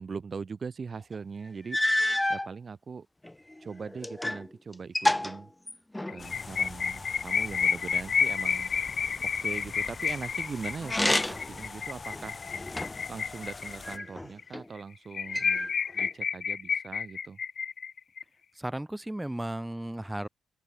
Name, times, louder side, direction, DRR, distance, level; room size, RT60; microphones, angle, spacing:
voice 1, 0.0-3.1 3.6-5.5 6.1-8.7 9.2-12.4 13.1-17.4, right 5 dB, 40° right, 2.3 m, -41 dB
sound 1, 1.1-1.2 1.7-2.5 3.2-4.5 4.7-6.3 10.8-11.6 12.1-13.1 13.8-14.6 15.3-16.1, left 1 dB, 10° left, 0.9 m, -29 dB
sound 2, 6.1-14.0 14.4-14.5 14.8-14.9 15.1-18.2, left 6 dB, 45° left, 0.4 m, -30 dB
sound 3, 6.2-14.0, left 4 dB, 30° left, 1.3 m, -44 dB
voice 2, 18.5-20.3, right 1 dB, 10° right, 3.1 m, -34 dB
open air
cardioid pair, 90°, 0 cm